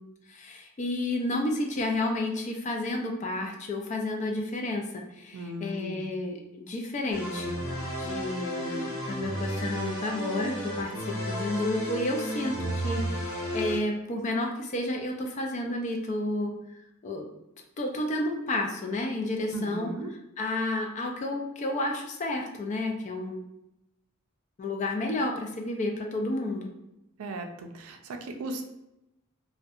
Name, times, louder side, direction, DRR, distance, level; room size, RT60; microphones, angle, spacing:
voice 1, 0.0-7.6 8.0-17.3 17.8-19.9 20.4-23.4 24.6-26.7, left 2 dB, 35° left, 2 dB, 0.3 m, -31 dB
voice 2, 5.3-6.2 19.5-20.1 27.2-28.6, right 1 dB, 90° right, 5 dB, 0.4 m, -37 dB
sound 1, 7.1-13.8, equal, 80° left, 0.8 m, -33 dB
2.6 x 2.1 x 2.3 m, 0.88 s
head